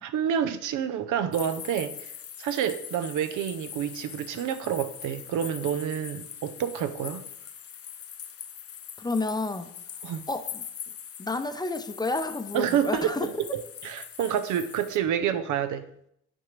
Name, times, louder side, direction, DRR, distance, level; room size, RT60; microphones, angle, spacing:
voice 1, 0.0-2.1 2.4-7.2 10.0-10.2 12.5-15.9, right 9 dB, 80° right, 11 dB, 0.6 m, -28 dB
sound 1, 1.3-15.0, left 9 dB, 50° left, 0.7 m, -42 dB
voice 2, 9.0-9.7 10.3-10.6 11.2-13.3, left 2 dB, 15° left, 8 dB, 0.6 m, -30 dB
8.9 x 5.2 x 3.2 m, 0.72 s
cardioid pair, 90°, 30 cm